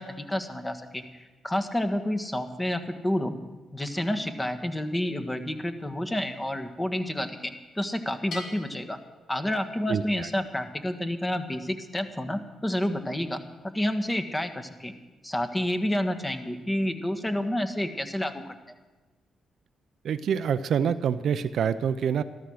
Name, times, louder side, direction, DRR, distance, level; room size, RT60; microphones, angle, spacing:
voice 1, 0.0-3.4 3.7-9.0 9.3-13.4 13.7-14.9 15.2-18.6, left 1 dB, 15° left, 8 dB, 1.5 m, -29 dB
Bell, 8.3-10.0, left 2 dB, 65° left, 3.2 m, -43 dB
voice 2, 9.9-10.3 20.0-22.2, right 7 dB, 70° right, 12 dB, 0.6 m, -26 dB
13.0 x 13.0 x 6.4 m, 1.2 s
supercardioid pair, 65°, 0 cm